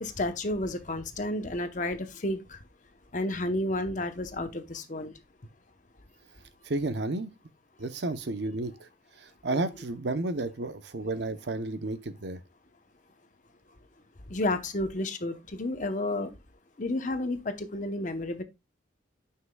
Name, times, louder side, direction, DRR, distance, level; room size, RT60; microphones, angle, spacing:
voice 1, 0.0-2.6 3.1-5.1 9.5-9.6 14.3-16.3 16.8-18.4, left 1 dB, 45° left, 0.9 m, -31 dB
voice 2, 6.7-7.3 7.8-8.9 9.2-12.4, right 2 dB, 65° right, 0.7 m, -32 dB
9.7 x 5.7 x 2.3 m
head